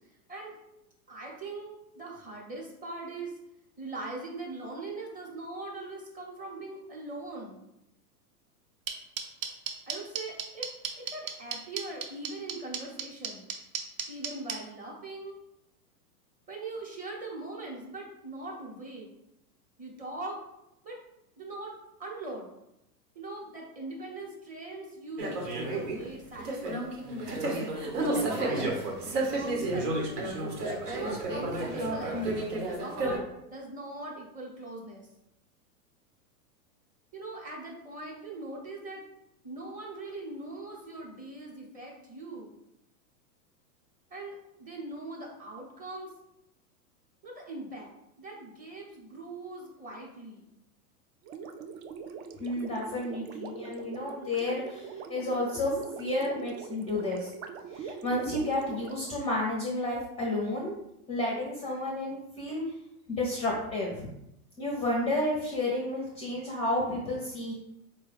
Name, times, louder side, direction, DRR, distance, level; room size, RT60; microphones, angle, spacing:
voice 1, 1.1-3.3 3.8-7.6 9.9-10.7 11.1-13.5 14.1-15.4 16.5-19.1 19.8-20.4 20.8-21.0 21.4-21.7 22.0-22.5 23.1-26.9 28.0-30.3 30.9-35.1 37.1-39.0 39.4-42.5 44.1-46.1 47.2-47.9 48.2-50.5, right 2 dB, 20° right, -1 dB, 0.8 m, -41 dB
sound 1, 8.9-14.5, right 8 dB, 65° right, 0.8 m, -32 dB
sound 2, 25.2-33.2, right 2 dB, 85° right, 1.1 m, -31 dB
Gurgling, 51.2-59.6, right 6 dB, 50° right, 0.4 m, -42 dB
voice 2, 52.4-57.3 57.7-60.7 61.1-62.6 63.1-64.1 64.6-67.5, left 1 dB, 15° left, -2 dB, 0.5 m, -31 dB
4.5 x 2.2 x 3.3 m, 0.84 s
hypercardioid pair, 125°, 46 cm